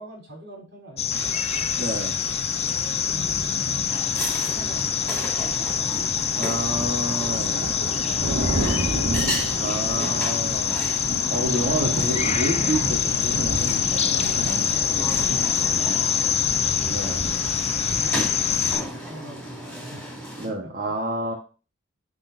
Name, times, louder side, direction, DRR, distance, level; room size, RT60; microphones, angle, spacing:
voice 1, 0.0-2.0 2.6-3.7 4.3-6.1 6.9-9.2 14.9-17.1 17.9-18.6 18.9-20.7, equal, 60° right, -1 dB, 3.8 m, -44 dB
sound 1, 1.0-18.8, left 8 dB, 30° left, 0.5 m, -25 dB
Rain, 1.1-18.7, right 1 dB, 75° right, 1.9 m, -32 dB
voice 2, 1.7-2.1 6.3-7.5 9.6-14.6 16.9-17.2 20.4-21.3, right 1 dB, 45° right, -2 dB, 1.4 m, -30 dB
sound 2, 3.9-20.5, equal, 5° left, 3.0 m, -35 dB
11.0 x 4.2 x 2.7 m, 0.33 s
head